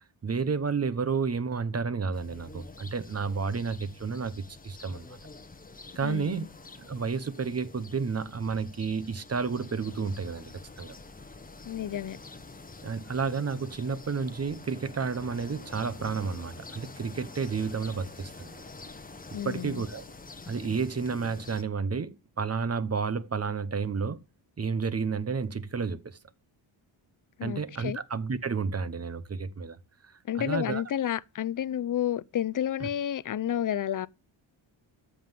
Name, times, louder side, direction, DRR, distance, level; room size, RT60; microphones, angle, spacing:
voice 1, 0.2-5.2 5.9-6.5 6.8-10.5 10.8-11.0 12.8-18.6 19.4-20.0 20.5-24.2 24.6-26.2 27.4-29.8 30.3-30.8 32.8-32.9, right 5 dB, 30° right, 1.0 m, -31 dB
sound 1, 2.1-21.6, left 3 dB, 15° left, 1.1 m, -47 dB
voice 2, 6.0-6.5 11.7-12.2 19.3-19.8 27.4-28.0 30.3-34.1, left 10 dB, 40° left, 0.5 m, -31 dB
13.5 x 5.6 x 7.5 m
wide cardioid pair, 145°, 48 cm